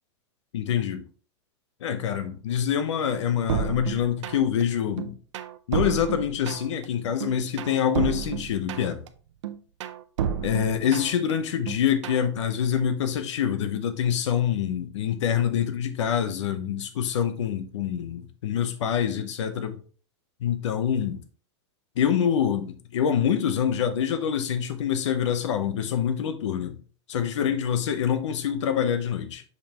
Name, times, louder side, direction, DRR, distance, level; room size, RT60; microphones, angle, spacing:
voice 1, 0.5-1.0 1.8-5.2 5.7-9.0 10.4-19.8 20.4-21.2 22.0-26.8 27.1-29.4, left 8 dB, 75° left, 0.9 m, -26 dB
sound 1, 3.5-4.6 5.0-6.9 7.2-9.1 9.4-11.3 11.7-12.3, right 8 dB, 75° right, 0.7 m, -31 dB
6.6 x 5.4 x 3.0 m
supercardioid pair, 165°, 15 cm